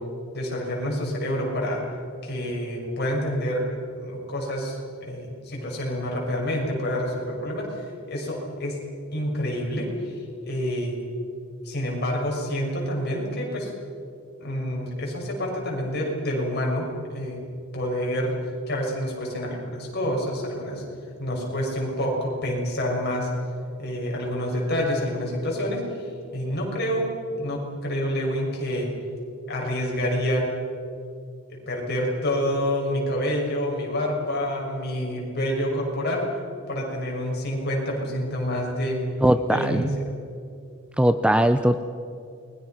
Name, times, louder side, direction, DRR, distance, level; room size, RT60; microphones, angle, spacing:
voice 1, 0.3-1.8 2.2-3.7 4.0-8.8 9.1-11.0 11.6-13.7 14.4-17.4 17.7-18.3 18.7-20.8 21.2-23.3 23.8-27.0 27.4-28.9 29.5-30.5 31.5-36.2 36.7-39.0 39.3-40.0, equal, 50° left, -1 dB, 6.4 m, -28 dB
voice 2, 39.2-39.9 41.0-41.8, right 1 dB, 5° right, 10 dB, 0.5 m, -20 dB
29.5 x 22.0 x 5.9 m, 2.5 s
head